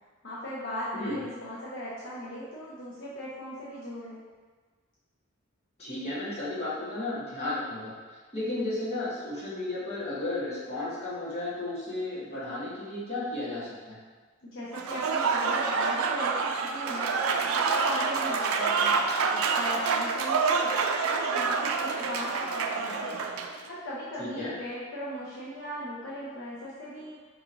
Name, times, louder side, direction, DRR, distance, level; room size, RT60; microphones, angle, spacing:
voice 1, 0.2-4.2 14.4-17.1 17.5-23.1 23.7-27.2, equal, 60° left, -7 dB, 0.5 m, -38 dB
voice 2, 5.8-7.9 8.3-14.0 24.2-24.5, left 2 dB, 30° left, -10 dB, 1.2 m, -33 dB
Applause / Crowd, 14.7-23.6, right 5 dB, 85° right, 0.3 m, -27 dB
4.7 x 2.9 x 2.6 m, 1.4 s
head